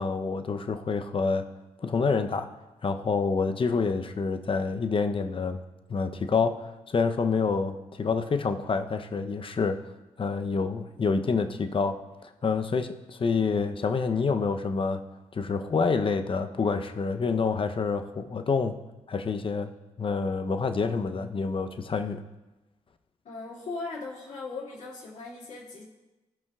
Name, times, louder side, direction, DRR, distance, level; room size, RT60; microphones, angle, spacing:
voice 1, 0.0-1.5 1.8-2.5 2.8-5.6 5.9-9.8 10.2-15.0 15.3-18.8 19.1-19.7 20.0-22.2, left 4 dB, 45° left, 8 dB, 0.7 m, -27 dB
voice 2, 23.2-25.8, left 3 dB, 75° left, -5 dB, 2.4 m, -38 dB
15.0 x 5.5 x 2.4 m, 1.1 s
cardioid pair, 60°, 13 cm